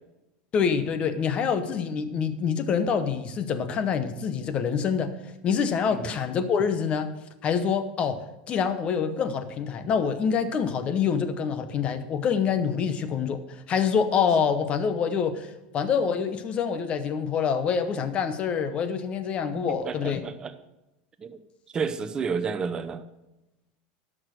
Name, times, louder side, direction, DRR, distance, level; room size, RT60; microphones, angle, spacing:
voice 1, 0.5-7.1 7.4-20.2, left 6 dB, 30° left, 10 dB, 0.9 m, -26 dB
voice 2, 19.5-20.5 21.2-21.4 21.7-23.0, right 5 dB, 20° right, 9 dB, 0.7 m, -31 dB
11.5 x 6.2 x 6.4 m, 0.95 s
supercardioid pair, 155°, 4 cm